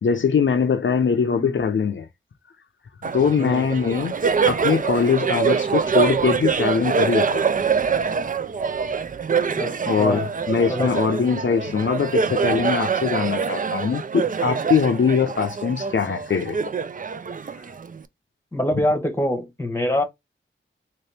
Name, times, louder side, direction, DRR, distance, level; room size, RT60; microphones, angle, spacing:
voice 1, 0.0-2.1 3.1-4.2 4.5-7.6 9.9-16.6, left 6 dB, 65° left, 0.6 m, -22 dB
voice 2, 1.2-1.6 3.4-3.6 9.6-10.2 10.7-10.9 18.5-20.0, left 1 dB, 10° left, 1.0 m, -24 dB
Laughter, 3.0-18.0, right 6 dB, 40° right, 0.4 m, -24 dB
2.9 x 2.9 x 3.3 m
cardioid pair, 45°, 21 cm